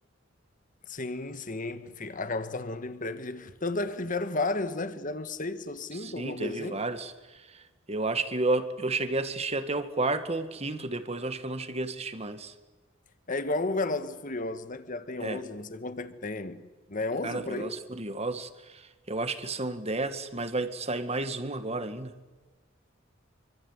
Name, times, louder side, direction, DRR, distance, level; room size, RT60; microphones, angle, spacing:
voice 1, 0.9-6.8 13.3-17.8, left 2 dB, 40° left, 1.8 m, -33 dB
voice 2, 5.9-7.6 7.9-12.5 15.2-15.4 17.2-22.1, right 2 dB, 30° right, 2.0 m, -32 dB
27.5 x 25.0 x 8.2 m
head